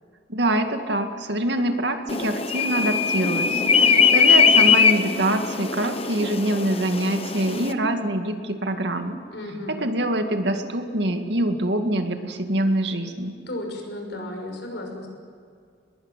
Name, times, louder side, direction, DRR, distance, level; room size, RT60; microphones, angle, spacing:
voice 1, 0.3-9.2 9.7-13.4, right 1 dB, 70° right, 5 dB, 2.2 m, -25 dB
sound 1, 2.1-7.7, left 6 dB, 35° left, 1.1 m, -20 dB
voice 2, 9.3-9.8 13.5-15.1, left 1 dB, 70° left, 3 dB, 6.4 m, -34 dB
23.0 x 21.5 x 9.2 m, 2.2 s
head